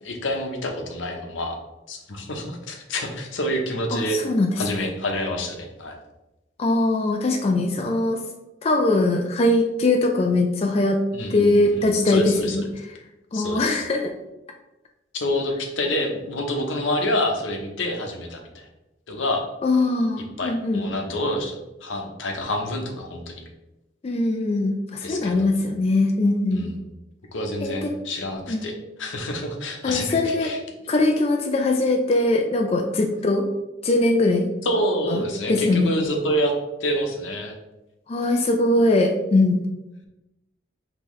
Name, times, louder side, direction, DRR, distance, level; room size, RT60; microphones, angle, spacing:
voice 1, 0.0-1.6 1.9-4.2 4.6-6.0 11.1-12.6 13.3-13.8 15.1-18.7 19.1-19.4 20.4-23.4 25.0-25.7 26.5-26.8 27.3-30.6 30.8-30.9 34.6-36.5 36.8-37.6, left 1 dB, 85° left, 3 dB, 0.8 m, -27 dB
voice 2, 3.9-4.5 6.6-8.2 8.6-11.0 11.3-12.6 13.3-14.1 19.6-20.8 24.0-26.7 27.6-27.9 28.5-28.7 29.8-30.5 30.9-33.5 33.8-34.5 35.1-35.2 35.5-35.9 38.1-39.6, left 2 dB, 30° left, 3 dB, 0.4 m, -21 dB
5.4 x 2.9 x 3.1 m, 0.98 s
head